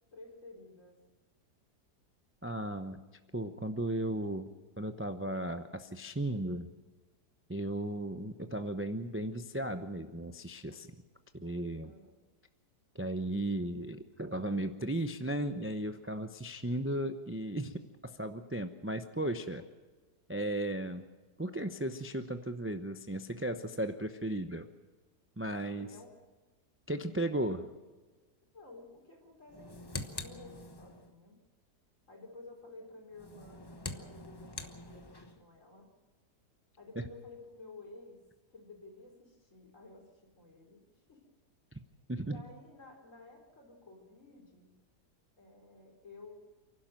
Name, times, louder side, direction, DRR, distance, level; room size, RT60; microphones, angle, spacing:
voice 1, 0.1-1.0 11.8-12.3 25.8-26.3 28.5-31.4 32.1-35.9 36.8-38.2 38.5-41.3 42.2-44.7 45.4-46.4, left 2 dB, 50° left, 0 dB, 4.7 m, -53 dB
voice 2, 2.4-3.0 3.3-4.5 4.8-6.7 7.5-10.9 11.3-11.9 12.9-19.6 20.3-21.0 21.4-24.7 25.4-25.9 26.9-27.7 42.1-42.4, right 1 dB, 20° right, 8 dB, 0.4 m, -35 dB
sound 1, 29.5-31.1 33.1-35.4, left 2 dB, 15° left, 0.9 m, -44 dB
29.0 x 12.0 x 7.6 m, 1.3 s
omnidirectional pair, 1.7 m